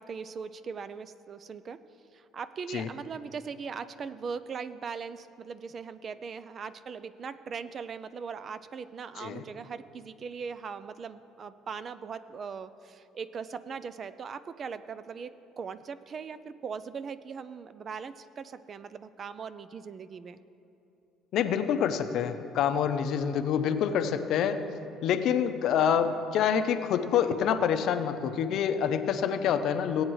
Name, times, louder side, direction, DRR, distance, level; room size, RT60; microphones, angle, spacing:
voice 1, 0.0-1.8 2.1-20.4 27.8-28.0, right 6 dB, 40° right, 14 dB, 0.4 m, -40 dB
voice 2, 21.3-24.6 25.0-30.0, left 8 dB, 65° left, 9 dB, 0.6 m, -27 dB
17.5 x 8.8 x 3.1 m, 2.9 s
cardioid pair, 110°, 0 cm